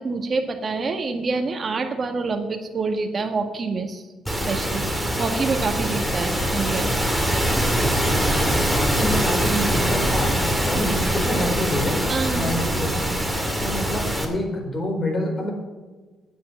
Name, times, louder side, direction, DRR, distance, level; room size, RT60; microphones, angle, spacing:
voice 1, 0.0-4.0 4.5-6.9 12.1-12.5, right 4 dB, 40° right, 5 dB, 1.7 m, -26 dB
sound 1, 4.3-14.3, equal, ahead, 2.3 m, -23 dB
voice 2, 7.7-8.4 8.7-10.4 10.6-12.0 12.3-13.2 13.6-15.5, equal, 30° left, 1 dB, 4.3 m, -27 dB
9.5 x 8.4 x 8.1 m, 1.3 s
cardioid pair, 90°, 0 cm